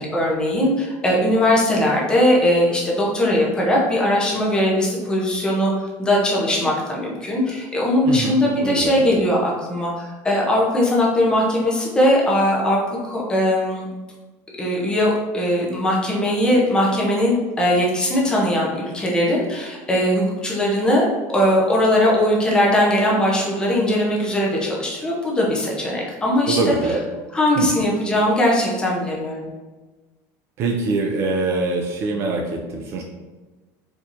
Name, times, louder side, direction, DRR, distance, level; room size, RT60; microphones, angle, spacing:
voice 1, 0.0-5.7 6.0-13.9 14.6-21.1 21.3-26.7 27.3-29.5, left 1 dB, 10° left, -3 dB, 0.6 m, -20 dB
voice 2, 8.0-9.0 26.5-27.0 27.6-27.7 30.6-33.0, right 3 dB, 35° right, 2 dB, 0.4 m, -24 dB
4.3 x 2.8 x 2.5 m, 1.3 s
cardioid pair, 175°, 7 cm